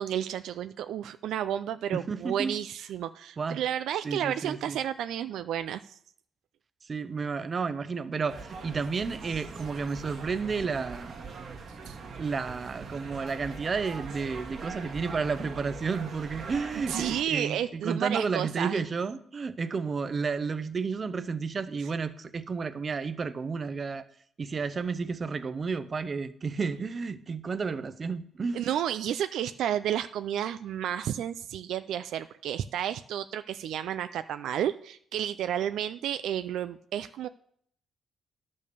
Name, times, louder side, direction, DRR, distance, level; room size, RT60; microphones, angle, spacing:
voice 1, 0.0-5.9 11.9-12.0 16.9-18.8 28.5-37.3, right 10 dB, 80° right, 0.4 m, -31 dB
voice 2, 1.9-2.6 3.4-3.6 4.0-4.8 6.8-11.3 12.2-24.1 24.4-28.6, right 5 dB, 40° right, 0.7 m, -32 dB
sound 1, 8.3-17.2, right 4 dB, 60° right, 1.7 m, -42 dB
10.5 x 5.3 x 6.8 m
cardioid pair, 90°, 0 cm